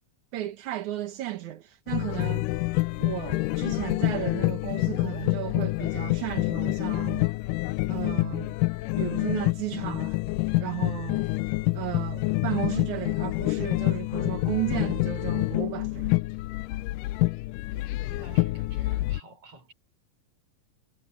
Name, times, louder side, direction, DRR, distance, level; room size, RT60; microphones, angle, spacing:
voice 1, 0.3-2.5 3.0-7.3 7.9-8.6 9.0-10.2 10.6-11.3 11.7-16.2, right 14 dB, 65° right, 2.5 m, -34 dB
sound 1, 1.9-19.2, left 21 dB, 80° left, 2.0 m, -27 dB
voice 2, 17.7-19.7, right 1 dB, 40° right, 5.8 m, -50 dB
omnidirectional pair, 4.1 m